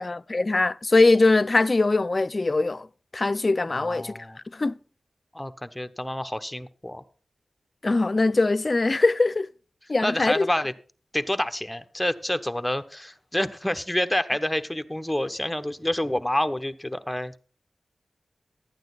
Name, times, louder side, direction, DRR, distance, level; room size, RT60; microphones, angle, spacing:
voice 1, 0.0-2.9 3.1-4.2 4.5-4.7 7.8-9.5 9.9-10.5, left 3 dB, 45° left, 0.4 m, -22 dB
voice 2, 3.7-4.4 5.3-7.0 10.0-10.7 11.1-17.4, left 1 dB, 10° left, 0.9 m, -28 dB
12.0 x 9.0 x 4.0 m
cardioid pair, 40°, 0 cm